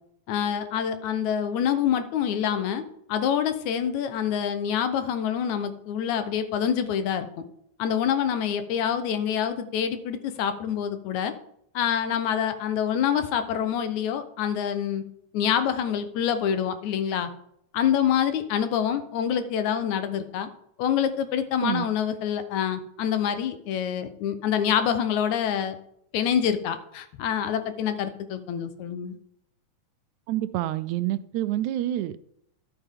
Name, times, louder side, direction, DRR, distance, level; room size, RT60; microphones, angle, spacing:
voice 1, 0.3-2.8 3.1-7.3 7.8-11.3 11.8-15.0 15.3-17.3 17.7-20.5 20.8-25.8 26.1-29.1, left 8 dB, 80° left, 10 dB, 2.2 m, -26 dB
voice 2, 30.3-32.2, right 13 dB, 80° right, 15 dB, 1.9 m, -27 dB
12.0 x 7.7 x 3.6 m, 0.74 s
omnidirectional pair, 3.4 m